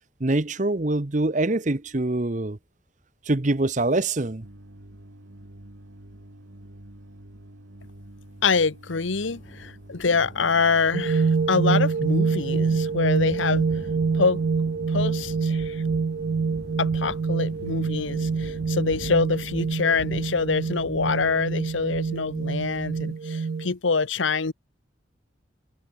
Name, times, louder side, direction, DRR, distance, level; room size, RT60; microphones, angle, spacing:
voice 1, 0.2-2.6 3.3-4.4, right 2 dB, 40° right, 1.0 m, -24 dB
sound 1, 4.4-19.0, right 1 dB, 80° right, 3.5 m, -47 dB
voice 2, 8.4-13.8 14.1-14.4 14.9-15.8 16.8-24.5, left 4 dB, 80° left, 1.0 m, -25 dB
sound 2, 9.2-23.0, equal, 35° left, 6.0 m, -45 dB
sound 3, 10.9-23.7, right 5 dB, 55° right, 0.4 m, -26 dB
head